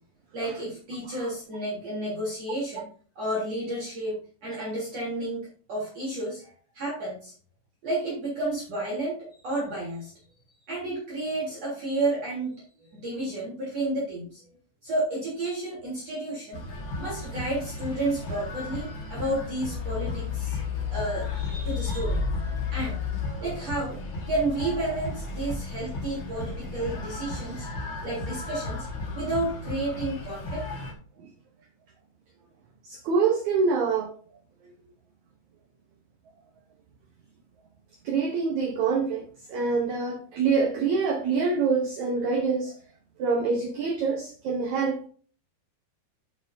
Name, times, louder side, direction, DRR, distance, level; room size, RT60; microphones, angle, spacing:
voice 1, 0.3-2.9 3.2-7.3 7.8-10.1 10.7-14.4 14.8-16.6 17.0-20.6 20.9-22.2 22.7-23.0 23.4-24.0 24.3-27.7 28.0-28.9 29.1-30.6, right 1 dB, 40° right, 4.2 m, -31 dB
sound 1, 16.5-30.9, left 3 dB, 60° left, 1.2 m, -33 dB
voice 2, 32.8-34.1 38.0-42.7 43.2-45.1, right 5 dB, 70° right, 1.8 m, -25 dB
12.0 x 6.9 x 2.7 m
omnidirectional pair, 4.6 m